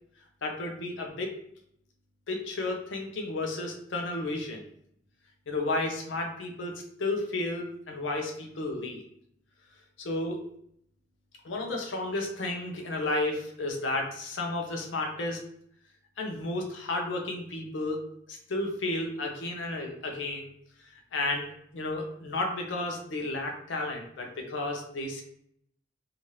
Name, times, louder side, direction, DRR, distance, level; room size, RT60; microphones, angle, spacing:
voice 1, 0.4-1.3 2.3-4.6 5.5-6.7 7.0-9.0 10.0-10.4 11.4-15.5 16.2-18.0 18.3-20.5 21.1-25.2, left 2 dB, 80° left, 2 dB, 0.6 m, -32 dB
2.8 x 2.4 x 3.1 m, 0.69 s
head